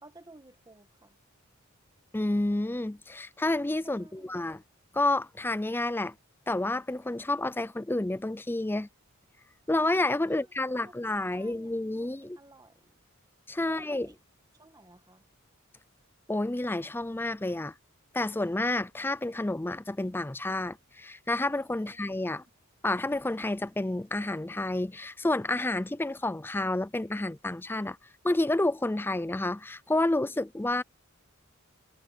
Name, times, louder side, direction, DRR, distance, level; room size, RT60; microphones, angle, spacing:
voice 1, 0.0-1.2 3.8-4.4 10.3-10.9 11.2-13.0 13.6-14.2 14.6-15.2 21.8-22.4, right 2 dB, 15° right, 1.7 m, -55 dB
voice 2, 2.1-4.6 4.9-6.1 6.5-8.9 9.7-12.4 13.5-14.1 16.3-17.7 18.1-22.4 22.8-28.0 28.2-30.8, left 2 dB, 10° left, 0.4 m, -29 dB
head